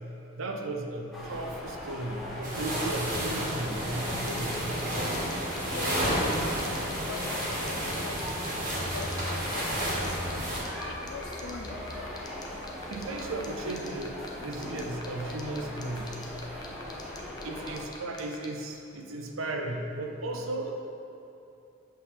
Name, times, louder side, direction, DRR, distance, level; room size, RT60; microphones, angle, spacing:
voice 1, 0.4-4.8 12.9-16.1 17.4-20.7, right 2 dB, 70° right, 2 dB, 0.7 m, -35 dB
sound 1, 1.1-17.8, left 1 dB, ahead, 1.1 m, -40 dB
sound 2, 2.4-10.6, equal, 40° right, 1.8 m, -31 dB
sound 3, 4.3-18.5, left 4 dB, 20° left, 0.7 m, -44 dB
voice 2, 5.5-10.4 10.8-12.1, left 5 dB, 70° left, 7 dB, 0.4 m, -44 dB
8.2 x 3.8 x 6.5 m, 2.8 s
head